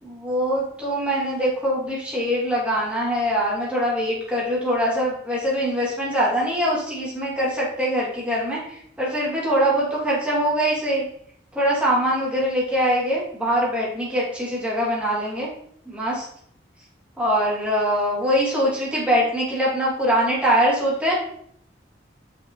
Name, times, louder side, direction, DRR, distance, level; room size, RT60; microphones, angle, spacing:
voice 1, 0.0-11.0 11.5-15.5 15.9-16.3 17.2-21.1, equal, 5° right, -7 dB, 2.3 m, -23 dB
5.9 x 5.8 x 3.0 m, 0.65 s
head